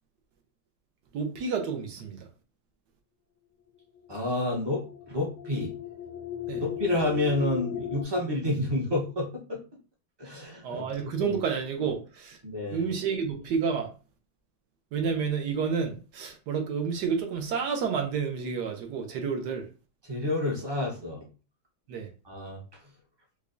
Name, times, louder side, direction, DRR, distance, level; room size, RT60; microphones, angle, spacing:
voice 1, 1.1-2.3 6.5-6.6 10.6-12.4 12.7-13.9 14.9-19.7 21.9-22.1, right 6 dB, 70° right, 1.1 m, -30 dB
sound 1, 4.1-8.0, left 11 dB, 75° left, 1.1 m, -36 dB
voice 2, 4.1-5.7 6.6-9.6 10.2-11.4 12.4-12.8 20.0-21.2 22.2-22.6, left 1 dB, 30° right, 0.4 m, -29 dB
4.8 x 2.2 x 2.5 m
omnidirectional pair, 2.1 m